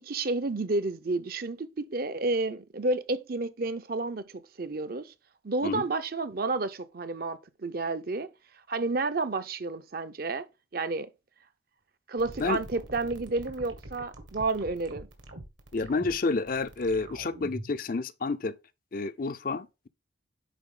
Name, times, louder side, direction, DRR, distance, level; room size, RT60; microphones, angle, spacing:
voice 1, 0.0-4.2 4.6-5.1 5.4-8.3 8.7-10.5 10.7-11.1 12.1-15.1, right 3 dB, 50° right, 0.6 m, -30 dB
sound 1, 12.2-17.8, right 1 dB, 75° right, 1.8 m, -44 dB
voice 2, 15.7-18.5 18.9-19.9, left 3 dB, 45° left, 0.5 m, -29 dB
10.0 x 4.1 x 3.7 m
head